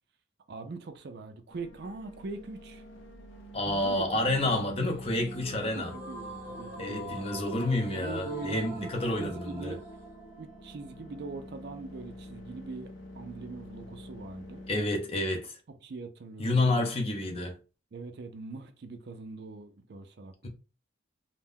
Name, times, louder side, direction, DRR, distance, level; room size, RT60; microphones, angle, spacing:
voice 1, 0.5-2.8 3.6-4.0 4.5-4.7 5.6-8.9 9.2-9.8 10.4-14.6 15.7-16.9 17.2-17.4 17.9-20.5, right 3 dB, 60° right, 0.4 m, -42 dB
sound 1, 1.5-14.7, left 1 dB, 85° left, 0.7 m, -47 dB
voice 2, 3.5-5.9 6.8-9.8 14.7-15.6 16.4-17.6, left 2 dB, 30° left, 0.6 m, -29 dB
sound 2, 5.2-12.3, equal, 10° right, 0.9 m, -44 dB
2.5 x 2.1 x 3.5 m
head